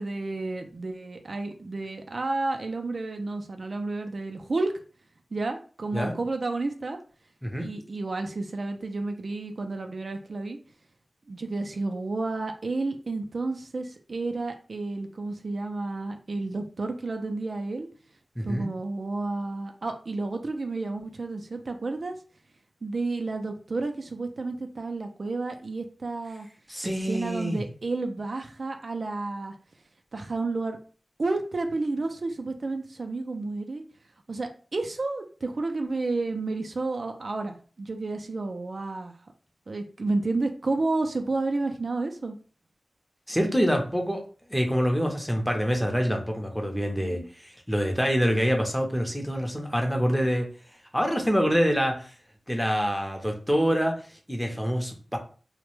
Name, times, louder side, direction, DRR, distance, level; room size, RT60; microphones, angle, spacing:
voice 1, 0.0-4.7 5.3-7.0 7.6-10.6 11.3-17.9 18.4-22.2 22.8-26.5 26.8-29.5 30.1-30.8 31.2-33.8 34.3-39.1 39.7-42.3 47.0-47.2, right 3 dB, 65° right, 5 dB, 0.3 m, -31 dB
voice 2, 18.4-18.7 26.7-27.6 43.3-44.2 44.5-50.5 50.9-52.1 52.5-55.2, equal, ahead, 2 dB, 0.6 m, -26 dB
2.1 x 2.0 x 3.0 m, 0.39 s
wide cardioid pair, 70°, 0 cm